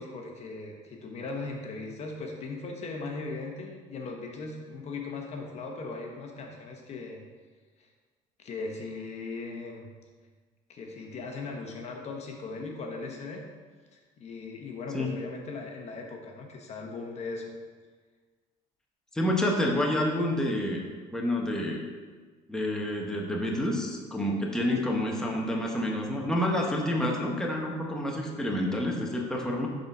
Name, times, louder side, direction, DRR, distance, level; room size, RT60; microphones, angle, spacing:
voice 1, 0.0-7.2 7.8-7.9 8.4-9.9 10.7-13.4 13.9-17.5, left 3 dB, 45° left, 2 dB, 1.0 m, -38 dB
voice 2, 19.1-20.8 21.1-21.8 22.5-29.7, left 1 dB, 5° left, -1 dB, 1.0 m, -28 dB
6.8 x 3.9 x 5.3 m, 1.4 s
cardioid pair, 115°, 15 cm